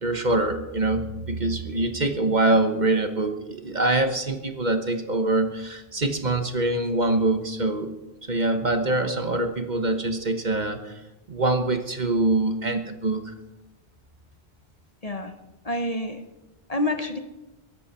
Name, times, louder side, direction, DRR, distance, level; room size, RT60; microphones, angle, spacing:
voice 1, 0.0-7.9 8.2-11.0 11.3-13.3, right 2 dB, 45° right, 7 dB, 1.2 m, -24 dB
voice 2, 15.6-16.2 16.7-17.2, left 1 dB, 35° left, 6 dB, 1.1 m, -28 dB
22.0 x 11.5 x 4.3 m, 1.0 s
omnidirectional pair, 1.1 m